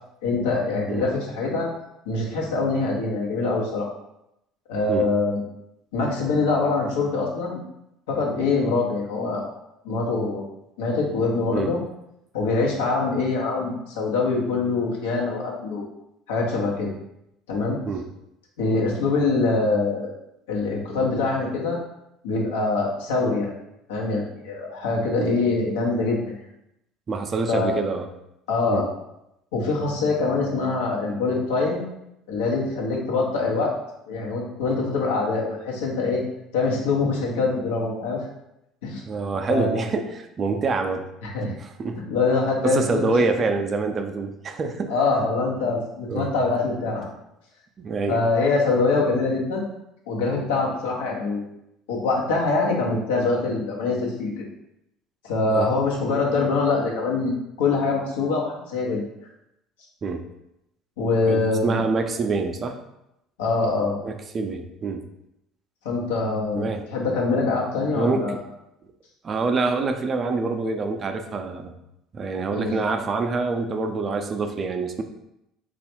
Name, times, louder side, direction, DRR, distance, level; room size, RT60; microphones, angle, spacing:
voice 1, 0.2-1.7 2.0-3.9 4.7-5.4 5.9-7.6 8.1-9.5 9.8-10.4 10.8-11.8 12.3-15.9 16.3-16.9 17.5-17.8 18.6-20.1 20.5-21.8 22.2-23.5 23.9-26.4 27.5-27.7 28.5-28.9 29.5-31.8 32.3-33.7 34.1-36.2 36.5-38.2 38.8-39.0 39.5-39.8 41.2-41.5 42.1-43.1 44.9-47.1 48.1-49.6 50.1-51.4 51.9-54.4 55.2-59.0 61.0-61.8 63.4-64.0 65.8-68.4 72.5-72.8, left 3 dB, 80° left, -2 dB, 0.9 m, -24 dB
voice 2, 27.1-28.1 28.7-28.9 39.1-41.1 41.6-42.0 42.6-44.9 46.1-46.3 47.8-48.2 55.5-55.7 60.0-60.3 61.3-62.8 64.0-65.0 66.6-67.2 67.9-68.4 69.2-71.7 72.1-75.0, right 4 dB, 40° right, 6 dB, 0.4 m, -26 dB
3.3 x 2.4 x 4.3 m, 0.84 s
hypercardioid pair, 65°, 0 cm